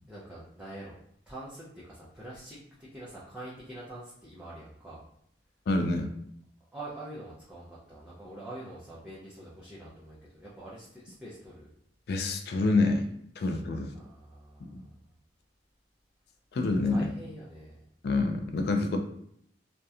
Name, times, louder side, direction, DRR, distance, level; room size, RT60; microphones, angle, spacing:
voice 1, 0.1-1.0 1.3-5.0 6.7-11.7 13.9-15.1 16.8-17.9, right 1 dB, 5° right, -8 dB, 0.5 m, -45 dB
voice 2, 5.7-6.1 12.1-13.1 13.4-13.9 14.6-14.8 16.5-17.1 18.0-19.0, left 3 dB, 60° left, 5 dB, 0.3 m, -27 dB
2.8 x 2.1 x 2.3 m, 0.72 s
head